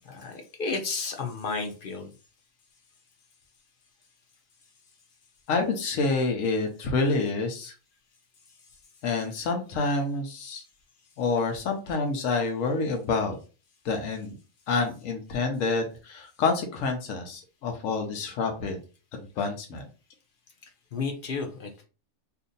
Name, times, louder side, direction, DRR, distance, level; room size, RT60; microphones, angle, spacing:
voice 1, 0.1-2.1 20.9-21.8, left 4 dB, 50° left, 3 dB, 0.7 m, -32 dB
voice 2, 5.5-7.7 9.0-10.6 11.2-13.4 13.8-14.4 14.7-18.8 19.1-19.9, left 3 dB, 90° left, 3 dB, 1.1 m, -28 dB
2.7 x 2.5 x 3.9 m, 0.34 s
omnidirectional pair, 1.3 m